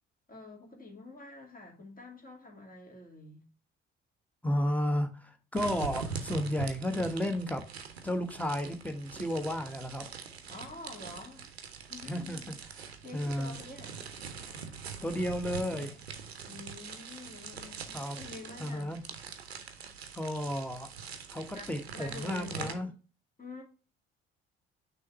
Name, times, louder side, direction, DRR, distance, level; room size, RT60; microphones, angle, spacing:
voice 1, 0.3-3.5 10.5-11.5 11.9-12.5 13.0-14.0 16.5-19.0 21.5-22.9 23.4-23.6, left 2 dB, 30° left, 2.4 m, -47 dB
voice 2, 4.4-7.6 8.0-10.0 12.1-13.5 15.0-16.0 17.9-18.2 18.6-19.0 20.1-20.9 21.3-22.9, equal, 5° left, 1.2 m, -33 dB
sound 1, 5.5-22.7, right 6 dB, 90° right, 0.6 m, -43 dB
6.2 x 3.1 x 5.5 m
figure-of-eight pair, 50°, 30 cm